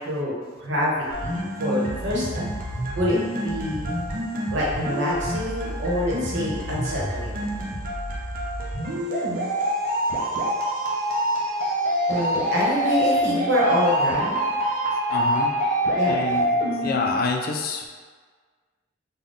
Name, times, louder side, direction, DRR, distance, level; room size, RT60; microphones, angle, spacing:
voice 1, 0.0-2.5 2.9-3.9 4.5-7.4 12.1-14.4 15.9-16.2, left 1 dB, 65° right, -5 dB, 1.0 m, -26 dB
sound 1, 1.1-17.1, equal, 45° right, 0.6 m, -26 dB
voice 2, 15.1-15.5 16.1-16.5 16.8-17.9, left 3 dB, 50° left, 2 dB, 0.4 m, -26 dB
3.6 x 2.2 x 3.8 m, 1.5 s
head